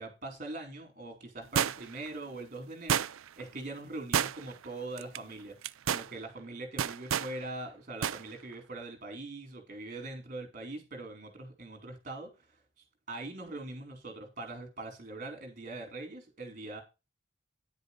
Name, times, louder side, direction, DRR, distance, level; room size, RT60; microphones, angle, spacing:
voice 1, 0.0-3.0 3.4-12.6 13.1-16.8, right 2 dB, 40° right, 4.7 m, -42 dB
sound 1, 1.6-2.1 2.9-3.4 4.1-4.6 5.0-5.2 5.6-6.1 6.8-7.3 8.0-8.2 8.5-8.6, right 8 dB, 80° right, 0.5 m, -29 dB
11.0 x 8.1 x 4.3 m
head